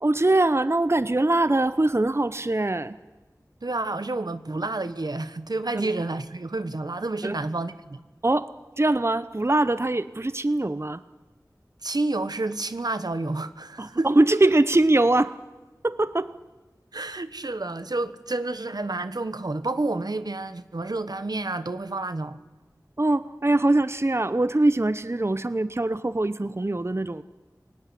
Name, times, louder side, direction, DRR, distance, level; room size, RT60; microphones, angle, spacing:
voice 1, 0.0-3.0 5.7-5.9 7.2-7.4 8.2-11.0 13.8-15.4 15.8-16.3 23.0-27.2, right 2 dB, 40° right, 0.8 m, -22 dB
voice 2, 3.6-8.0 11.8-14.1 16.9-22.4, right 2 dB, 80° right, 1.4 m, -29 dB
29.5 x 19.0 x 9.9 m
wide cardioid pair, 40°, 7 cm